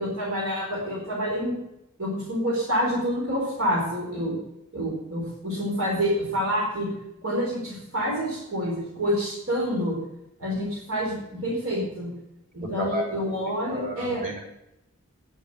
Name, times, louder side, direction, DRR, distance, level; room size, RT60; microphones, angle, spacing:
voice 1, 0.0-1.6 2.0-4.4 4.7-6.9 7.2-10.0 10.4-12.1 12.5-14.2, equal, 70° right, -3 dB, 4.4 m, -27 dB
voice 2, 12.6-13.2 13.7-14.4, equal, 35° right, -1 dB, 3.9 m, -32 dB
10.0 x 8.4 x 7.8 m, 0.87 s
head